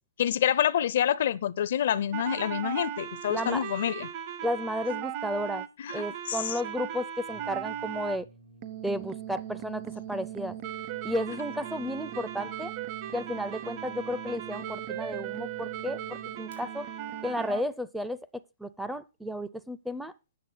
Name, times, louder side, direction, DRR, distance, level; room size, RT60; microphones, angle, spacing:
voice 1, 0.2-4.1 5.8-6.6, left 10 dB, 60° left, 0.5 m, -27 dB
sound 1, 2.1-8.2 8.6-17.6, right 10 dB, 35° right, 0.7 m, -37 dB
voice 2, 3.3-3.6 4.4-5.7 5.9-8.3 8.8-10.6 11.0-12.7 13.1-16.9 17.2-18.2 18.6-20.1, equal, ahead, 0.4 m, -33 dB
Brass instrument, 7.3-16.6, right 2 dB, 90° right, 4.0 m, -54 dB
8.4 x 6.2 x 5.9 m
hypercardioid pair, 145°, 0 cm